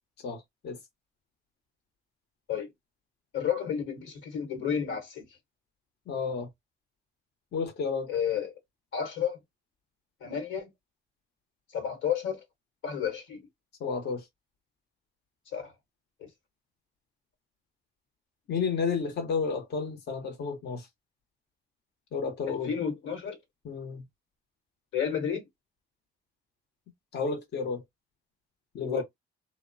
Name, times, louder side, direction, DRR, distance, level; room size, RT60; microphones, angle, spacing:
voice 1, 0.2-0.8 6.1-6.5 7.5-8.1 13.8-14.3 18.5-20.9 22.1-22.7 23.6-24.0 27.1-27.8 28.7-29.0, left 5 dB, 60° left, 0.8 m, -31 dB
voice 2, 3.3-5.3 8.1-8.5 8.9-9.4 10.2-10.7 11.7-12.4 12.8-13.4 15.5-15.7 16.2-16.3 22.5-23.4 24.9-25.4 28.8-29.0, left 8 dB, 90° left, 1.1 m, -31 dB
2.8 x 2.0 x 2.5 m
cardioid pair, 90°, 20 cm